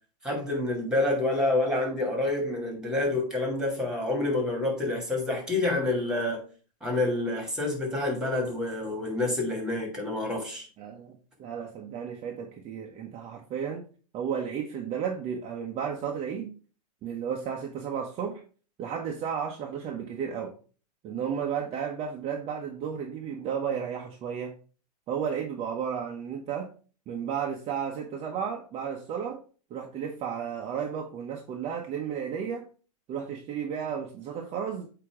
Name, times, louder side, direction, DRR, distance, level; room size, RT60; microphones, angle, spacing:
voice 1, 0.2-6.4 6.8-10.7, left 2 dB, 5° right, 2.5 m, -28 dB
voice 2, 10.8-13.8 14.1-16.5 17.0-18.4 18.8-20.6 21.0-24.5 25.1-26.7 27.1-29.4 29.7-32.6 33.1-34.9, right 7 dB, 30° right, 0.9 m, -33 dB
8.4 x 3.0 x 4.8 m
hypercardioid pair, 125°, 21 cm